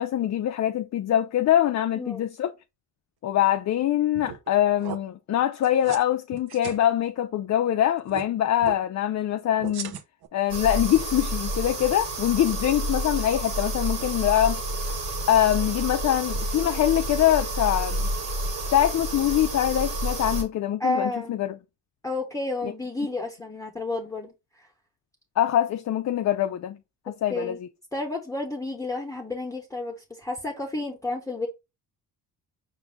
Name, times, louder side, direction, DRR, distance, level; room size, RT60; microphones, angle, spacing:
voice 1, 0.0-2.5 3.2-10.0 10.3-14.6 15.3-18.1 18.7-21.6 22.6-22.7 25.4-26.8 27.1-27.6, left 11 dB, 40° left, 0.4 m, -24 dB
voice 2, 2.0-2.3 20.8-21.3 22.0-24.3 24.6-24.7 27.3-27.6 27.9-31.5, left 2 dB, 5° left, 1.0 m, -31 dB
sound 1, 4.1-4.5 4.8-5.0 5.6-6.0 6.3-6.8 8.0-8.2 8.6-8.8 9.6-10.3, right 9 dB, 60° right, 0.7 m, -37 dB
sound 2, 10.5-20.4, right 1 dB, 85° right, 1.5 m, -30 dB
4.7 x 2.7 x 3.5 m
cardioid pair, 75°, 43 cm